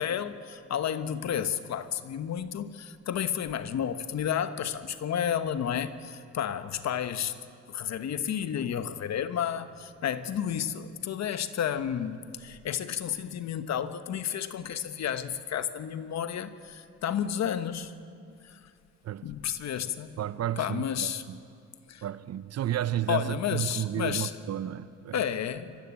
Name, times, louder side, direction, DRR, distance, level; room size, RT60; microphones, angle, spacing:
voice 1, 0.0-7.4 7.7-17.9 18.4-18.6 19.2-20.2 20.6-21.2 21.9-22.0 23.1-24.4 25.1-25.8, left 9 dB, 60° left, 1.1 m, -31 dB
voice 2, 20.2-21.4 22.0-25.2, right 11 dB, 55° right, 0.7 m, -32 dB
23.5 x 14.5 x 8.8 m
cardioid pair, 90°, 30 cm